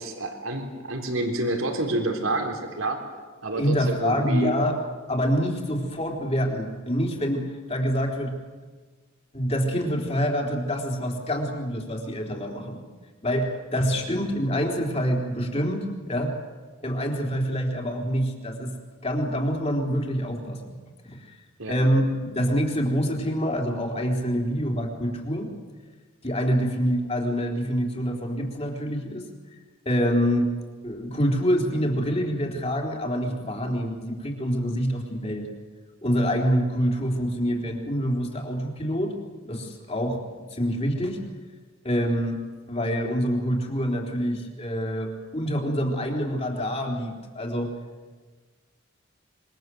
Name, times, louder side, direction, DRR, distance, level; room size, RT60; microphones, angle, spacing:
voice 1, 0.0-3.0 3.4-4.5 21.6-21.7, right 2 dB, 85° right, 4 dB, 3.9 m, -28 dB
voice 2, 3.5-4.8 5.1-8.4 9.3-12.8 13.2-16.4 16.8-18.7 19.0-20.8 21.0-21.4 21.7-25.5 26.2-29.3 29.5-29.6 29.9-30.5 30.8-35.5 36.0-39.1 39.4-41.2 41.8-42.4 42.7-47.7, equal, 30° left, 2 dB, 4.0 m, -26 dB
26.5 x 24.0 x 7.9 m, 1.4 s
head